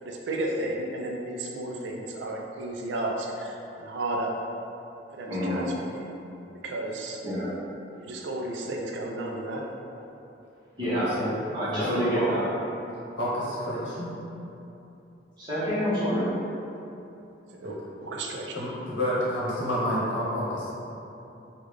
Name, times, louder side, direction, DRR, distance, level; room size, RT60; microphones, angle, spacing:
voice 1, 0.0-4.4 5.1-6.1 6.6-7.2 8.0-9.6 17.6-18.6, right 1 dB, 70° right, 0 dB, 0.4 m, -33 dB
voice 2, 5.3-5.6 7.2-7.5 10.8-11.1 11.5-12.4 15.4-16.3, equal, 25° right, -11 dB, 1.0 m, -27 dB
voice 3, 11.0-11.4 11.7-12.3 13.2-14.1 17.6-17.7 18.5-20.7, equal, 75° left, -7 dB, 0.9 m, -29 dB
3.5 x 2.3 x 3.1 m, 2.9 s
head